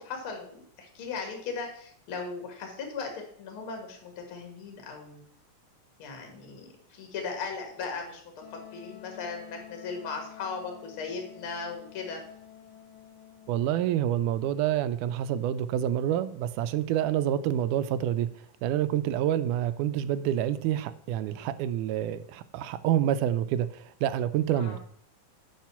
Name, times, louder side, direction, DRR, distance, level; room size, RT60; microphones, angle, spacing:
voice 1, 0.0-5.2 6.0-8.2 8.5-12.2 24.5-24.8, left 4 dB, 45° left, 3 dB, 2.4 m, -37 dB
Wind instrument woodwind instrument, 8.4-14.0, left 11 dB, 65° left, 1.8 m, -49 dB
voice 2, 13.5-18.3 18.6-24.8, right 11 dB, 80° right, 13 dB, 2.0 m, -27 dB
7.4 x 5.5 x 7.1 m, 0.63 s
omnidirectional pair, 3.8 m